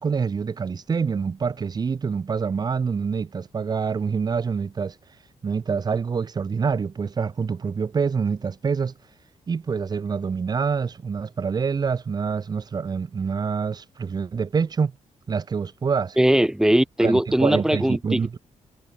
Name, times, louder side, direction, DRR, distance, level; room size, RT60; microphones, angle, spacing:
voice 1, 0.0-5.0 5.4-8.9 9.5-14.9 15.3-16.2 17.0-18.4, right 5 dB, 35° right, 1.2 m, -26 dB
voice 2, 16.2-18.4, right 1 dB, 5° right, 3.0 m, -20 dB
cardioid pair, 135°, 12 cm